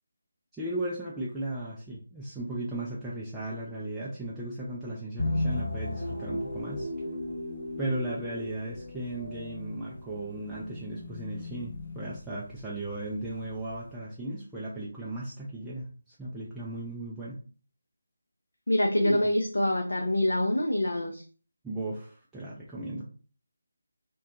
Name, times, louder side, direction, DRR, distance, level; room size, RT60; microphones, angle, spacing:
voice 1, 0.5-6.9 7.8-17.4 19.0-19.3 21.6-23.0, right 1 dB, 5° right, -8 dB, 0.3 m, -36 dB
sound 1, 5.2-13.9, left 1 dB, 50° left, 0.8 m, -36 dB
voice 2, 18.7-21.2, left 1 dB, 70° left, 3 dB, 0.3 m, -25 dB
2.6 x 2.2 x 2.4 m, 0.40 s
figure-of-eight pair, 155°, 0 cm